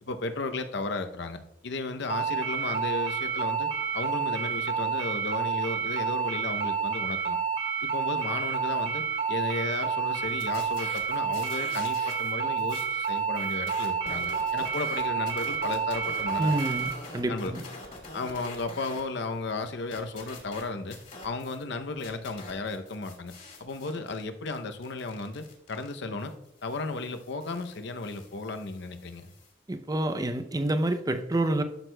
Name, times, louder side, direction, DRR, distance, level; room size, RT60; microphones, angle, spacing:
voice 1, 0.0-3.7 3.9-7.4 7.8-9.0 9.3-16.6 17.3-17.6 18.1-21.0 21.2-23.3 23.6-26.3 26.6-29.3, left 3 dB, 65° left, 0.7 m, -34 dB
sound 1, 2.1-16.9, right 6 dB, 90° right, 2.4 m, -29 dB
sound 2, 10.2-12.3 12.6-19.0 19.3-21.6 22.0-29.5, left 2 dB, 45° left, 2.3 m, -46 dB
voice 2, 16.4-17.6 29.7-31.6, right 1 dB, 20° right, 0.5 m, -28 dB
12.0 x 6.3 x 2.2 m
head